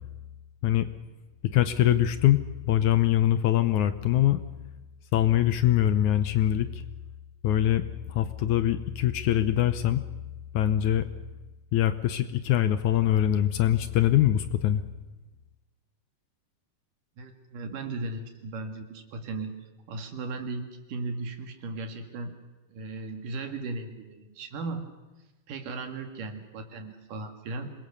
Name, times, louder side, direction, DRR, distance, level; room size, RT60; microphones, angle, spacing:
voice 1, 1.5-4.4 5.1-6.8 7.4-10.0 10.5-11.1 11.7-14.8, left 12 dB, 70° left, 12 dB, 2.0 m, -23 dB
voice 2, 17.2-19.5 19.9-22.4 22.7-24.8 25.5-27.7, right 3 dB, 70° right, 6 dB, 3.7 m, -36 dB
26.5 x 21.5 x 6.8 m, 1.1 s
omnidirectional pair, 4.0 m